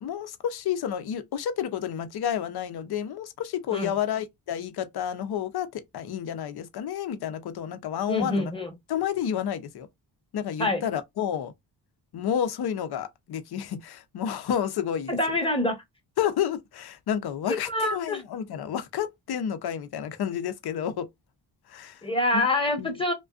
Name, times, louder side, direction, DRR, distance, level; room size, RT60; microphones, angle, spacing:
voice 1, 0.0-8.5 8.9-9.9 10.3-11.5 12.1-15.2 16.2-21.1 21.7-22.0 22.3-22.5 22.8-23.0, left 9 dB, 60° left, 0.6 m, -30 dB
voice 2, 8.1-8.7 10.6-10.8 15.1-15.8 17.5-18.2 22.0-23.1, left 1 dB, 10° left, 0.9 m, -26 dB
2.4 x 2.2 x 2.3 m
cardioid pair, 65°, 44 cm